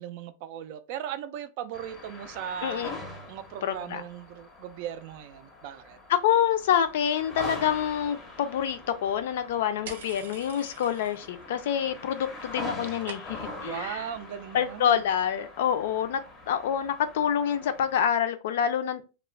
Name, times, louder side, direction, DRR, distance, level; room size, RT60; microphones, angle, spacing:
voice 1, 0.0-2.9 3.3-6.0 13.6-15.0, right 9 dB, 50° right, 0.3 m, -38 dB
sound 1, 1.7-18.1, left 2 dB, 15° left, 0.6 m, -43 dB
voice 2, 2.6-3.0 3.6-4.0 6.1-14.0 14.5-16.2 16.5-19.0, left 9 dB, 70° left, 0.4 m, -27 dB
sound 2, 9.9-11.5 11.7-12.3 12.5-13.6, right 5 dB, 85° right, 0.6 m, -45 dB
2.3 x 2.0 x 3.1 m
supercardioid pair, 165°, 0 cm